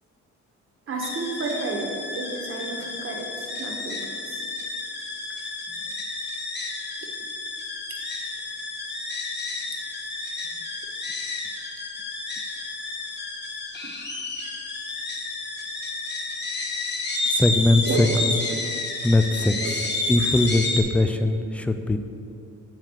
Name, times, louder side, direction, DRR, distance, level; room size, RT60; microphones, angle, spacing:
voice 1, 0.9-4.4 10.2-10.4 12.4-12.6 14.3-14.5 16.5-16.8 17.1-17.4 17.9-18.7 19.6-19.7 20.2-20.3, right 3 dB, 45° right, 0 dB, 1.4 m, -32 dB
sound 1, 1.0-20.8, left 3 dB, 35° left, 1.2 m, -31 dB
voice 2, 17.2-18.1 19.0-19.6 20.1-22.0, left 2 dB, 5° left, 8 dB, 0.3 m, -21 dB
7.4 x 5.0 x 5.6 m, 2.7 s
cardioid pair, 90°, 30 cm